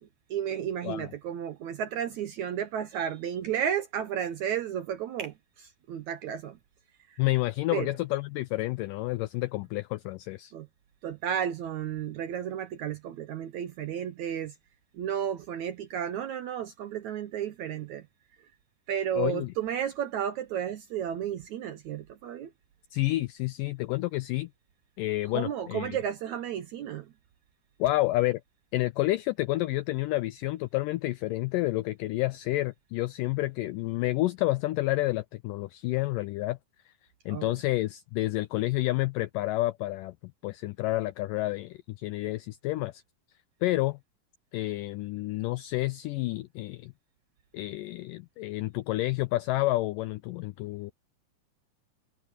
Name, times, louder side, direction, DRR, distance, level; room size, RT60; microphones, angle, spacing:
voice 1, 0.3-6.6 7.1-7.2 7.7-7.9 10.5-10.7 11.0-14.5 14.9-18.1 18.9-22.5 25.3-27.1 37.3-37.6, right 9 dB, 70° right, 1.8 m, -33 dB
voice 2, 7.2-10.5 19.1-19.5 22.9-24.5 25.0-26.0 27.8-28.4 28.7-36.6 36.9-37.0 37.3-40.1 40.4-43.0 43.6-44.0 44.5-46.9 47.5-50.9, left 18 dB, 90° left, 1.9 m, -29 dB
omnidirectional pair, 4.4 m